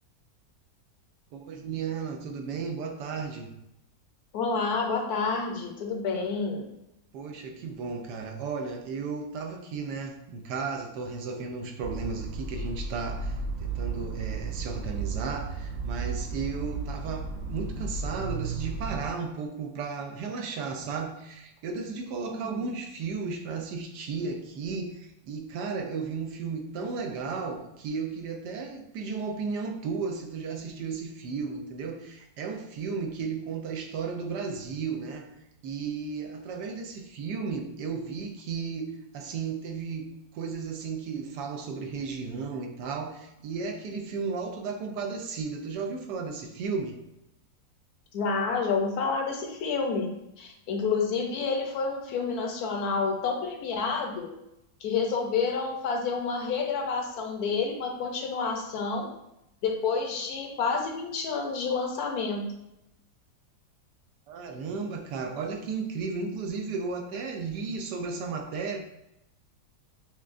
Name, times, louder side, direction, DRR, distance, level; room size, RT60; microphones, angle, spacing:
voice 1, 1.3-3.5 7.1-35.3 35.6-40.1 40.3-47.0 64.3-68.8, right 5 dB, 90° right, 4 dB, 1.2 m, -34 dB
voice 2, 4.3-6.6 22.3-22.7 48.1-50.1 50.4-54.3 54.8-59.1 59.6-62.5, left 4 dB, 70° left, 2 dB, 1.1 m, -29 dB
sound 1, 11.8-19.1, right 4 dB, 65° right, 0.8 m, -34 dB
6.0 x 2.2 x 2.5 m, 0.86 s
omnidirectional pair, 1.7 m